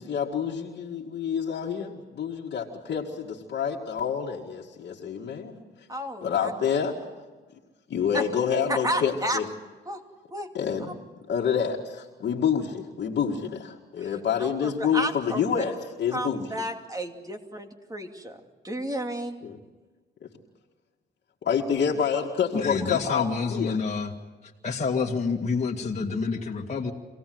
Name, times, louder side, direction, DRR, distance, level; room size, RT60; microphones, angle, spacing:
voice 1, 0.0-5.6 6.2-6.9 7.9-9.5 10.5-11.0 11.3-16.5 19.4-19.6 20.2-20.3 21.4-23.8, left 7 dB, 60° left, -2 dB, 2.1 m, -28 dB
voice 2, 5.9-6.5 8.1-8.2 8.7-9.4 9.9-10.0 10.3-10.5 14.0-15.6 16.1-19.4, right 1 dB, 20° right, 4 dB, 2.6 m, -32 dB
voice 3, 22.5-24.1 24.6-26.9, left 4 dB, 35° left, -2 dB, 2.1 m, -28 dB
25.5 x 17.5 x 7.8 m, 1.3 s
cardioid pair, 90°, 20 cm